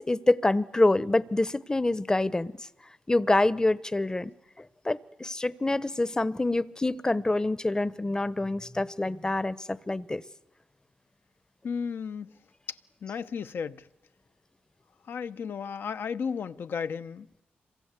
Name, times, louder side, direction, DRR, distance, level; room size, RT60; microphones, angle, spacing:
voice 1, 0.0-2.5 3.1-4.3 4.8-10.2, left 2 dB, 20° left, 0.9 m, -26 dB
voice 2, 11.6-12.3 12.7-13.9 15.0-17.3, left 6 dB, 65° left, 0.9 m, -34 dB
27.0 x 23.5 x 8.3 m
cardioid pair, 75°, 4 cm